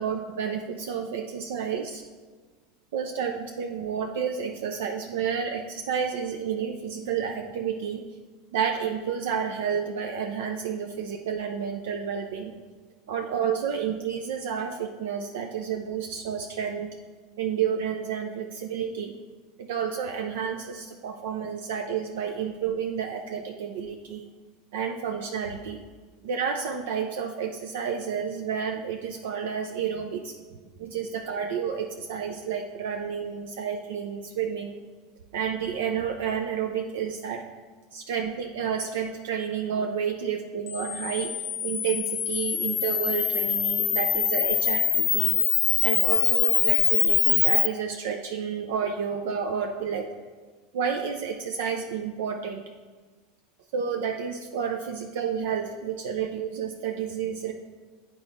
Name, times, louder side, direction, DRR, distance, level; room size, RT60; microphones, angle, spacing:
voice 1, 0.0-2.0 2.9-8.0 8.5-12.6 13.1-16.9 17.4-19.1 19.6-24.2 24.7-25.8 26.2-30.3 30.8-34.8 35.3-37.4 37.9-41.3 41.6-44.8 45.1-45.3 45.8-50.1 50.7-52.6 53.7-57.5, right 7 dB, 70° right, 4 dB, 0.5 m, -30 dB
Camera, 40.7-47.7, left 9 dB, 35° left, 0.4 m, -24 dB
8.7 x 4.6 x 4.1 m, 1.4 s
hypercardioid pair, 85°, 0 cm